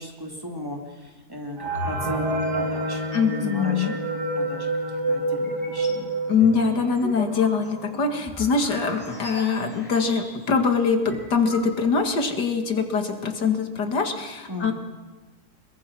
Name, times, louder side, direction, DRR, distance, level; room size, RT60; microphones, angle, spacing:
voice 1, 0.0-4.0 4.4-6.1 14.5-14.7, left 1 dB, 15° right, 1 dB, 2.8 m, -37 dB
sound 1, 1.6-7.0 7.5-7.6 7.8-7.9 8.6-8.7 9.1-9.4, right 3 dB, 75° right, 3.3 m, -29 dB
Piano, 2.0-8.7, left 3 dB, 20° left, 3.3 m, -35 dB
voice 2, 3.1-3.9 6.3-14.7, left 5 dB, 80° left, 6 dB, 2.6 m, -23 dB
sound 2, 5.4-6.0 6.4-10.6 10.8-10.9 11.1-12.1, equal, 5° left, 8.1 m, -40 dB
25.0 x 22.5 x 6.1 m, 1.2 s
omnidirectional pair, 1.8 m